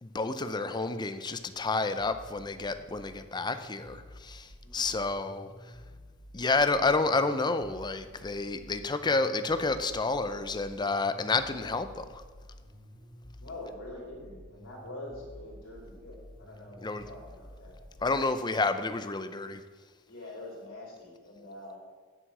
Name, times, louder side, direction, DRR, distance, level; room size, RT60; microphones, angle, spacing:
voice 1, 0.0-5.5 6.3-12.2 16.8-17.0 18.0-19.6, left 3 dB, 20° left, 10 dB, 0.5 m, -30 dB
sound 1, 1.4-18.2, equal, 55° left, 2.8 m, -51 dB
voice 2, 4.6-4.9 13.4-18.1 18.5-18.6 20.0-21.8, left 1 dB, 75° left, -4 dB, 3.0 m, -45 dB
7.9 x 6.2 x 7.6 m, 1.5 s
head